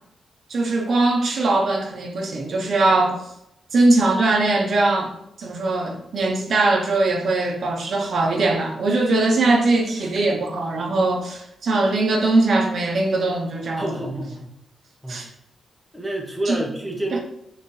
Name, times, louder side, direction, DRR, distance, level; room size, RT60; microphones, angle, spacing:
voice 1, 0.5-3.2 3.7-13.8 15.1-15.3 16.5-16.6 17.1-17.2, right 2 dB, 45° right, 1 dB, 0.9 m, -21 dB
voice 2, 13.8-14.5 15.0-15.3 15.9-17.2, right 1 dB, 5° right, -1 dB, 1.0 m, -28 dB
9.6 x 3.5 x 3.2 m, 0.80 s
wide cardioid pair, 175°, 0 cm